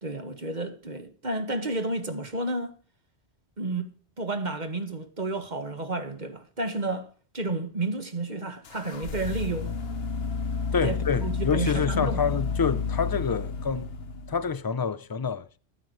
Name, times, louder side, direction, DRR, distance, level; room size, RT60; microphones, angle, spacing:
voice 1, 0.0-2.8 3.6-7.1 7.3-9.7 10.8-12.2, right 2 dB, 45° right, 1.8 m, -31 dB
sound 1, 8.6-14.5, left 5 dB, 65° left, 1.3 m, -31 dB
voice 2, 10.7-13.9 14.3-15.6, left 6 dB, 30° left, 0.4 m, -27 dB
14.5 x 12.0 x 3.2 m
omnidirectional pair, 1.1 m